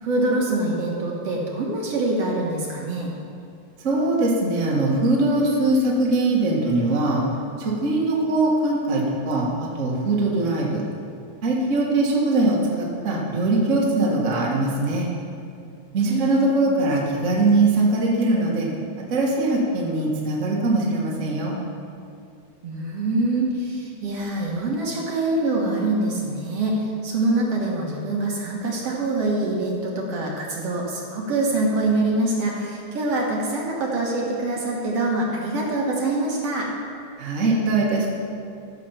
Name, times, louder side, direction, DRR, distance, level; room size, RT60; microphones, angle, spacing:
voice 1, 0.0-3.1 16.1-16.4 22.6-36.7, right 2 dB, 60° right, -2 dB, 2.2 m, -24 dB
voice 2, 3.8-7.2 7.6-10.8 11.4-15.1 15.9-18.7 19.1-21.5 37.2-38.1, right 2 dB, 35° right, -3 dB, 1.3 m, -21 dB
13.5 x 6.7 x 5.7 m, 2.4 s
omnidirectional pair, 3.6 m